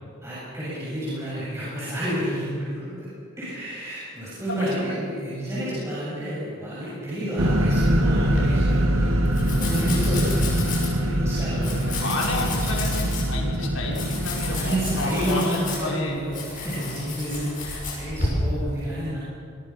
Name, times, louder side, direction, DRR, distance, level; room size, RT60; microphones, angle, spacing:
voice 1, 0.2-3.1 3.4-9.1 9.6-10.6 11.0-12.9 14.5-19.2, equal, 15° right, -10 dB, 7.7 m, -30 dB
sound 1, 7.4-15.4, equal, 80° right, 2.4 m, -23 dB
Domestic sounds home sounds, 8.1-18.3, left 2 dB, 40° left, 6.7 m, -33 dB
voice 2, 11.9-16.2, left 2 dB, 75° left, -2 dB, 5.6 m, -31 dB
27.0 x 22.5 x 6.1 m, 2.3 s
head